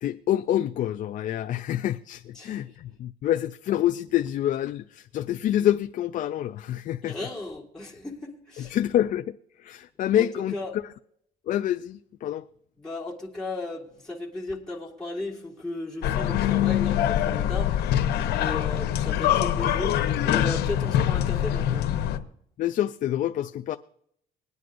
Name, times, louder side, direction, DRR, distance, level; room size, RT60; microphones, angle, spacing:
voice 1, 0.0-7.1 8.6-10.6 11.5-12.5 22.6-23.8, left 12 dB, 50° left, 0.4 m, -27 dB
voice 2, 2.3-2.8 7.0-8.8 10.1-10.2 10.5-10.8 12.8-21.9, left 2 dB, 5° left, 1.8 m, -36 dB
sound 1, 16.0-22.2, left 11 dB, 75° left, 0.8 m, -24 dB
21.5 x 9.4 x 2.5 m
cardioid pair, 110°, 17 cm